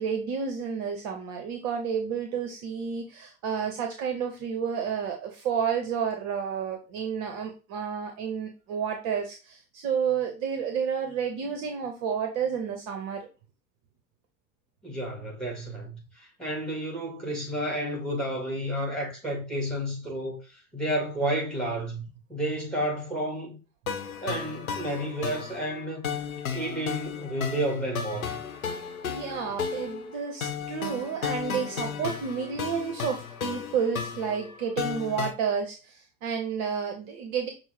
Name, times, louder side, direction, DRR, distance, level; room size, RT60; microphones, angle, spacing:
voice 1, 0.0-13.3 29.0-37.5, right 7 dB, 45° right, 0.8 m, -30 dB
voice 2, 14.8-20.4 20.7-22.0 22.3-23.6 24.2-26.1 26.5-28.4, right 1 dB, ahead, 2.2 m, -31 dB
sound 1, 23.9-35.3, left 6 dB, 75° left, 0.8 m, -34 dB
6.1 x 2.0 x 3.5 m
figure-of-eight pair, 80°, 43 cm